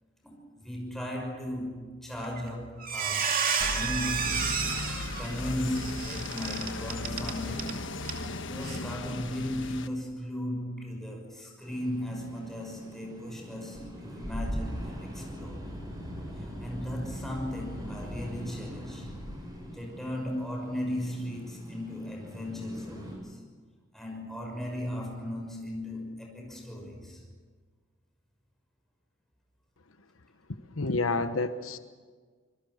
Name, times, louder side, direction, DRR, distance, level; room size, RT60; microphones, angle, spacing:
voice 1, 0.2-3.4 3.7-4.5 5.2-7.9 8.4-15.6 16.3-19.1 19.7-23.4 23.9-27.2, left 1 dB, ahead, 0 dB, 6.4 m, -36 dB
Squeak, 2.2-2.5 2.8-7.7 8.0-8.2 8.6-8.8, right 6 dB, 45° right, 2.5 m, -31 dB
sound 1, 3.6-9.9, left 2 dB, 65° left, 1.3 m, -36 dB
sound 2, 11.6-23.1, equal, 20° right, 7.8 m, -41 dB
voice 2, 30.8-31.8, left 3 dB, 90° left, 10 dB, 1.1 m, -29 dB
26.0 x 21.5 x 6.6 m, 1.5 s
head